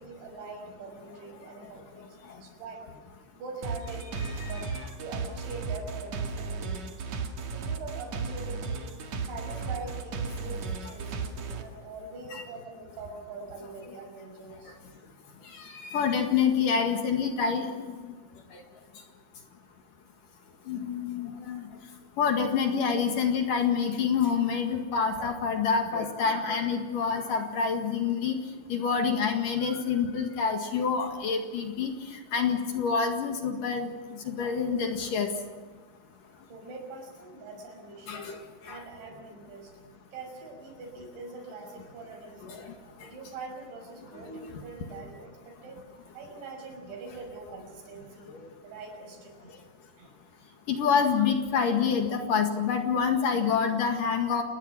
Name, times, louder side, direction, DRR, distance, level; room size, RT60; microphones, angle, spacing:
voice 1, 0.0-2.9 3.4-4.7 5.0-7.0 7.5-9.0 9.3-14.8 36.5-38.3 38.7-39.7 40.1-42.6 43.0-45.8 46.1-48.3 48.6-49.5 50.0-50.1, right 3 dB, 85° right, 2 dB, 8.1 m, -43 dB
sound 1, 3.6-11.6, right 5 dB, 50° right, 2.4 m, -34 dB
voice 2, 15.6-18.1 18.5-18.6 20.7-21.6 22.2-28.4 28.7-35.3 38.1-38.4 38.7-38.8 42.4-42.6 44.3-44.5 48.3-48.5 50.7-54.4, left 6 dB, 55° left, 4 dB, 3.1 m, -27 dB
29.0 x 20.5 x 6.0 m, 1.4 s
omnidirectional pair, 5.1 m